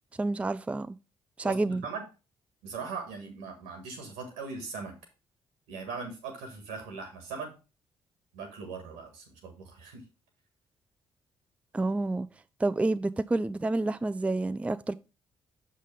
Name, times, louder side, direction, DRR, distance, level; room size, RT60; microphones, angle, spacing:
voice 1, 0.2-1.0 1.4-1.8 11.7-12.3 12.6-14.9, right 2 dB, 10° right, 0.3 m, -29 dB
voice 2, 1.4-2.1 2.6-5.0 5.7-7.5 8.3-10.0, right 4 dB, 80° right, 1.6 m, -40 dB
6.3 x 5.6 x 3.3 m
hypercardioid pair, 45°, 12 cm